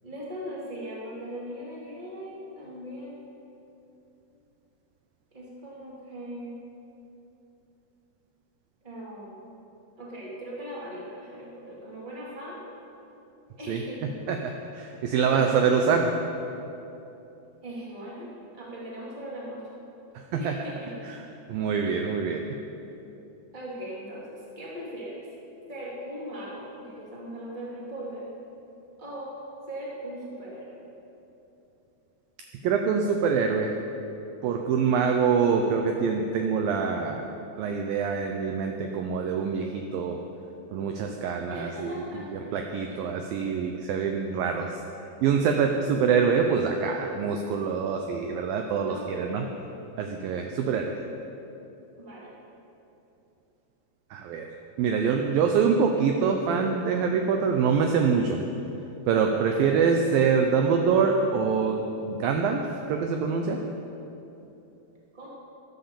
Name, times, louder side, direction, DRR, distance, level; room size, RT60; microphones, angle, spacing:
voice 1, 0.0-3.3 5.3-6.5 8.8-9.5 10.0-12.6 13.6-14.2 15.3-15.9 17.6-19.8 20.4-20.9 21.8-22.0 23.5-25.3 25.7-28.3 29.0-29.3 29.7-30.8 41.5-42.5 42.9-43.0 48.9-49.5 52.0-52.3 59.5-59.8 65.1-65.3, equal, 15° right, -5 dB, 2.3 m, -39 dB
voice 2, 14.3-16.1 20.2-20.6 21.0-22.4 32.6-33.8 34.4-37.3 37.6-40.2 40.7-49.5 50.0-51.0 54.1-54.5 54.8-58.5 59.1-63.6, right 6 dB, 75° right, 3 dB, 2.2 m, -25 dB
13.5 x 11.5 x 7.0 m, 2.9 s
omnidirectional pair, 4.7 m